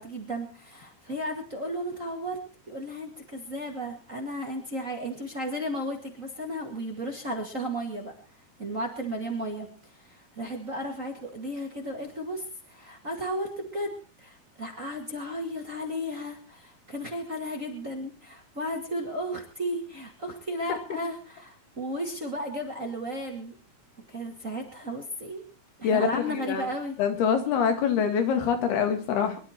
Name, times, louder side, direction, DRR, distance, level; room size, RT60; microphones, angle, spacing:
voice 1, 0.0-2.4 2.7-8.1 8.6-13.9 14.2-23.6 24.1-25.4 25.8-26.9, equal, 30° right, 1.8 m, -34 dB
voice 2, 25.8-26.7 27.0-29.4, left 7 dB, 85° left, 4.0 m, -25 dB
24.0 x 11.5 x 4.4 m
omnidirectional pair, 4.4 m